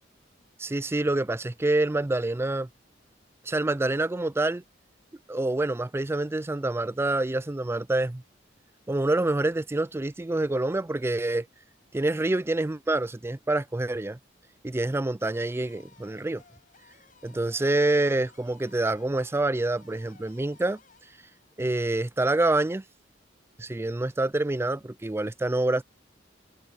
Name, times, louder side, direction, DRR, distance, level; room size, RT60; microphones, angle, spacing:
voice 1, 0.6-2.7 3.5-4.6 5.3-8.2 8.9-11.5 11.9-14.2 14.6-16.4 17.2-20.8 21.6-22.8 23.6-25.8, right 2 dB, 15° right, 0.4 m, -26 dB
sound 1, 15.3-22.3, left 5 dB, 45° left, 5.6 m, -59 dB
head